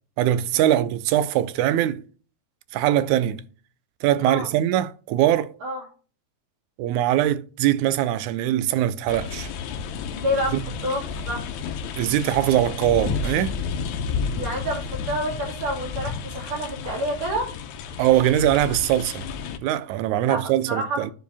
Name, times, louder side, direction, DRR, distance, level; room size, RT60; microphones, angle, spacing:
voice 1, 0.2-2.0 2.7-3.4 4.0-5.5 6.8-9.5 12.0-13.6 18.0-19.3 19.6-21.1, right 12 dB, 90° right, 2.0 m, -22 dB
sound 1, 9.1-19.6, left 5 dB, 80° left, 2.1 m, -31 dB
voice 2, 10.1-10.5 10.8-11.4 14.3-17.5 20.2-21.1, equal, 65° right, 3.9 m, -28 dB
10.0 x 4.7 x 3.4 m
omnidirectional pair, 3.3 m